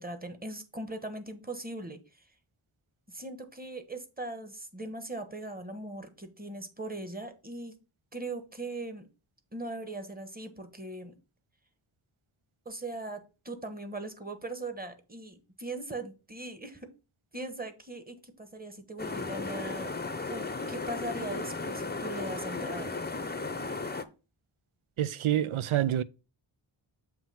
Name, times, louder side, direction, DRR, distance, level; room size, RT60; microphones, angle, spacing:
voice 1, 0.0-2.0 3.1-7.7 8.1-9.1 9.5-11.1 12.6-16.9 17.3-19.9 20.3-23.0, right 2 dB, 20° right, 1.3 m, -40 dB
sound 1, 19.0-24.0, left 3 dB, 20° left, 0.7 m, -35 dB
voice 2, 25.0-26.0, right 12 dB, 80° right, 0.5 m, -27 dB
7.3 x 3.0 x 5.7 m
wide cardioid pair, 55°, 48 cm